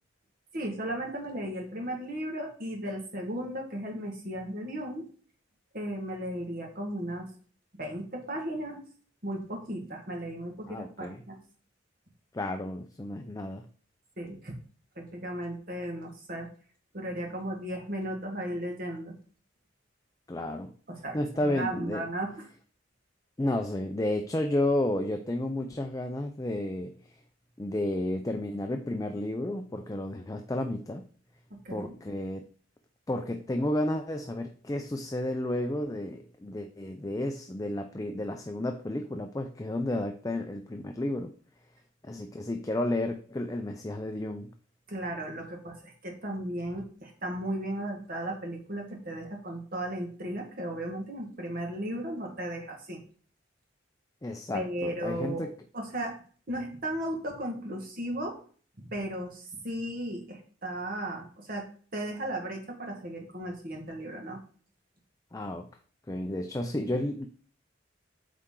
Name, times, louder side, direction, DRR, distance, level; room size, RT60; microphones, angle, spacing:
voice 1, 0.5-5.1 5.7-7.3 7.7-8.8 9.2-11.4 14.2-14.5 14.9-16.5 16.9-19.1 20.9-21.2 21.4-22.5 31.5-32.0 44.9-53.0 54.5-55.5 55.7-58.4 58.8-64.4, right 1 dB, 50° right, 2 dB, 1.7 m, -35 dB
voice 2, 10.7-11.2 12.3-13.7 20.3-20.7 21.1-22.0 23.4-27.0 27.6-31.0 31.7-32.4 33.1-41.3 42.0-44.5 54.2-55.5 65.3-65.7 66.1-67.3, left 1 dB, 20° left, 5 dB, 0.5 m, -32 dB
8.4 x 4.3 x 3.8 m, 0.44 s
head